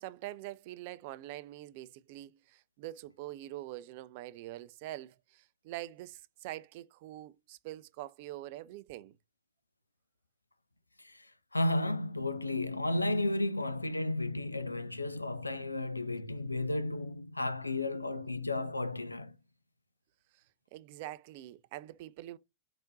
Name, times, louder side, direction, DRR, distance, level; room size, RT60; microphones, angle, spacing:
voice 1, 0.0-9.2 20.7-22.4, right 15 dB, 50° right, 0.4 m, -44 dB
voice 2, 11.5-19.3, left 2 dB, 85° left, 0.4 m, -33 dB
5.0 x 3.5 x 2.6 m
figure-of-eight pair, 90°, 0 cm